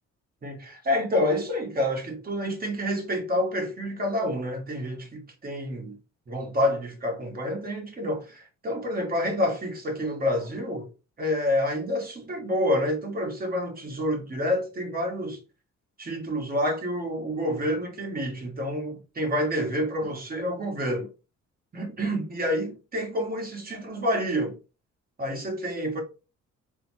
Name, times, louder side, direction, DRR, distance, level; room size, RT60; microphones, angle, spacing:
voice 1, 0.4-6.0 6.3-10.9 11.2-15.4 16.0-21.1 21.7-24.6 25.2-26.0, left 1 dB, 30° right, 1.2 m, -28 dB
3.9 x 2.0 x 3.2 m
cardioid pair, 90°, 30 cm